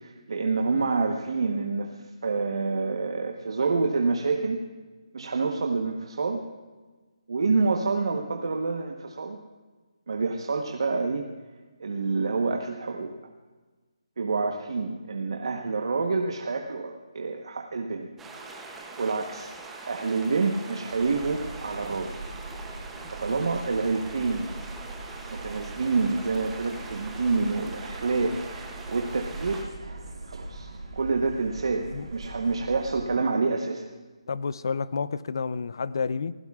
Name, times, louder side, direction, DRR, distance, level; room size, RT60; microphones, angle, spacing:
voice 1, 0.0-4.6 5.1-6.5 7.3-9.4 10.1-11.3 11.8-13.1 14.2-18.1 19.0-19.5 19.9-22.2 23.1-24.5 25.3-29.6 30.3-33.8, right 4 dB, 60° right, 1.1 m, -27 dB
sound 1, 18.2-29.6, right 3 dB, 5° right, 0.7 m, -43 dB
sound 2, 20.9-33.1, right 2 dB, 80° right, 4.2 m, -41 dB
voice 2, 34.3-36.3, left 5 dB, 45° left, 0.4 m, -30 dB
24.0 x 16.0 x 2.4 m
hypercardioid pair, 175°, 3 cm